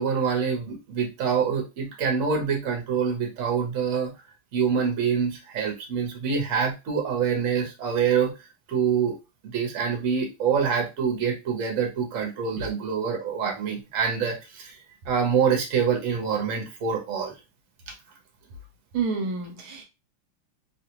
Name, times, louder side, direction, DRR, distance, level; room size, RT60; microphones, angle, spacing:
voice 1, 0.0-4.1 4.5-8.3 8.7-9.2 9.4-14.7 15.1-17.3, right 6 dB, 50° right, 1.0 m, -25 dB
voice 2, 18.9-19.8, right 5 dB, 80° right, 1.4 m, -29 dB
3.3 x 2.4 x 2.8 m
omnidirectional pair, 2.4 m